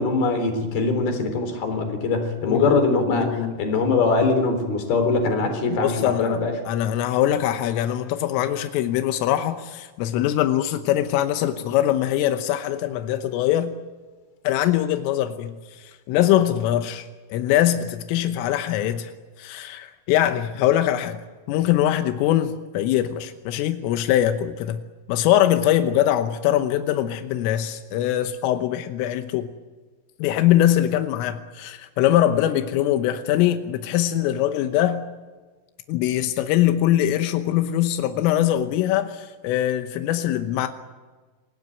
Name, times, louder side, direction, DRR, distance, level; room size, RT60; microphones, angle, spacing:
voice 1, 0.0-6.5, left 3 dB, 55° left, 7 dB, 5.4 m, -22 dB
voice 2, 2.5-3.6 5.7-6.4 6.7-13.7 14.5-17.1 17.3-19.1 19.4-21.2 21.5-24.8 25.1-29.5 30.2-35.0 35.9-40.7, left 12 dB, 90° left, 8 dB, 3.7 m, -22 dB
28.5 x 18.5 x 9.2 m, 1.4 s
omnidirectional pair, 5.7 m